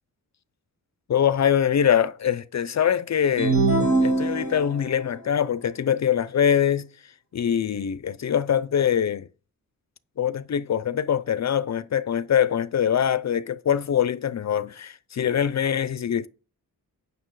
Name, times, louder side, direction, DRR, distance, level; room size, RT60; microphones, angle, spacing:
voice 1, 1.1-3.6 4.0-6.9 7.3-9.3 10.2-16.3, left 9 dB, 50° left, 0.5 m, -23 dB
sound 1, 3.4-5.0, right 3 dB, 40° right, 2.1 m, -22 dB
8.9 x 6.5 x 4.7 m
wide cardioid pair, 140°, 35 cm